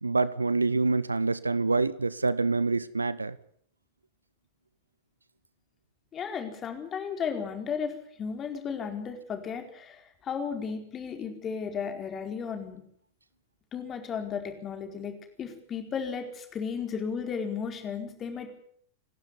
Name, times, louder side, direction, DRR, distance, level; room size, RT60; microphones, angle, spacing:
voice 1, 0.0-3.4, right 3 dB, 80° right, 19 dB, 0.9 m, -26 dB
voice 2, 6.1-12.8 13.7-18.6, left 6 dB, 25° left, 5 dB, 4.6 m, -34 dB
28.0 x 12.0 x 9.9 m, 0.65 s
figure-of-eight pair, 90°, 0 cm